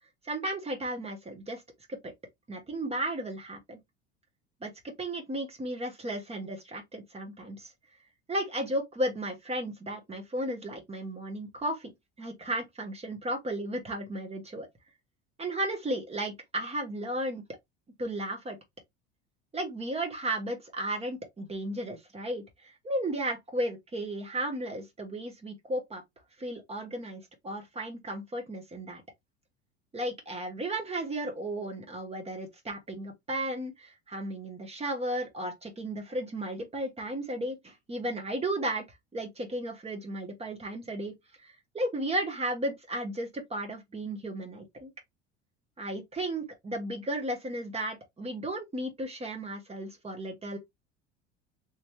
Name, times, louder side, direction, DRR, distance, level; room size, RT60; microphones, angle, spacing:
voice 1, 0.2-1.6 1.9-2.1 2.5-3.8 4.6-4.7 5.0-7.7 8.3-11.9 12.2-14.7 15.4-17.4 18.0-18.6 19.5-26.0 26.4-29.0 29.9-38.8 39.1-41.1 41.4-44.9 45.8-50.6, right 1 dB, 15° right, 1.2 m, -34 dB
3.2 x 3.0 x 2.9 m
figure-of-eight pair, 70°, 35 cm